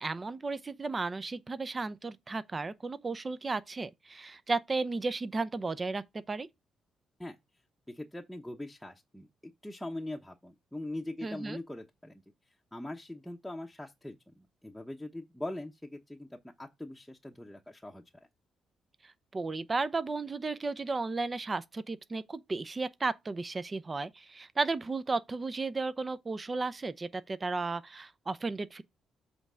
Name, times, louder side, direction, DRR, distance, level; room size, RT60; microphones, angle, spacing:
voice 1, 0.0-6.5 11.2-11.6 19.0-28.8, right 3 dB, 30° right, 0.6 m, -34 dB
voice 2, 7.9-12.2 12.7-18.0, left 1 dB, 5° left, 1.0 m, -42 dB
8.0 x 3.3 x 6.2 m
cardioid pair, 90°, 0 cm